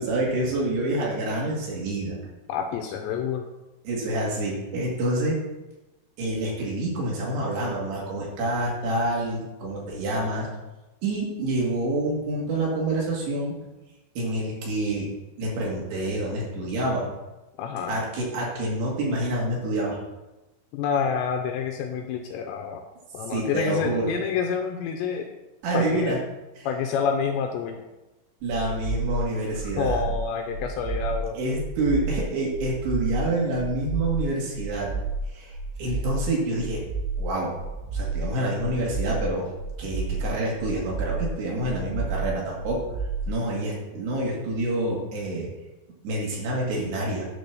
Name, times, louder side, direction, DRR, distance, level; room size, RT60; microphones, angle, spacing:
voice 1, 0.0-2.2 3.8-5.4 6.2-10.5 11.0-13.6 14.2-15.1 15.4-17.1 17.9-20.0 23.3-24.1 25.6-26.2 26.6-26.7 28.4-30.1 31.3-34.9 35.3-35.5 35.8-36.8 37.2-37.6 37.9-39.5 39.8-42.8 43.3-45.5 46.0-47.2, right 1 dB, 60° right, -4 dB, 4.0 m, -27 dB
voice 2, 2.5-3.4 17.6-18.0 20.7-22.8 23.1-25.3 25.7-26.2 26.7-27.8 29.8-31.4, left 7 dB, 85° left, 3 dB, 2.6 m, -28 dB
sound 1, 28.4-43.4, right 3 dB, 80° right, 3.5 m, -31 dB
11.0 x 4.3 x 6.8 m, 1.0 s
omnidirectional pair, 5.6 m